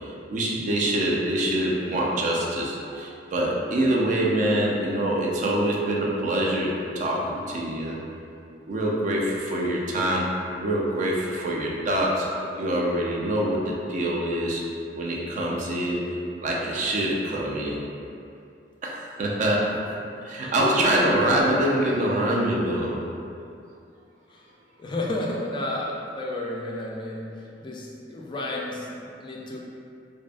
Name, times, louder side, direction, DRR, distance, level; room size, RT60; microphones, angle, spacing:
voice 1, 0.3-8.0 8.7-10.3 10.6-12.3 12.6-14.6 14.9-16.0 16.4-17.8 18.8-19.7 20.2-23.0, right 1 dB, 45° right, -3 dB, 0.4 m, -25 dB
voice 2, 20.4-20.9 24.3-24.5 24.8-29.6, left 1 dB, 25° left, -3 dB, 0.3 m, -32 dB
2.6 x 2.4 x 2.2 m, 2.6 s
head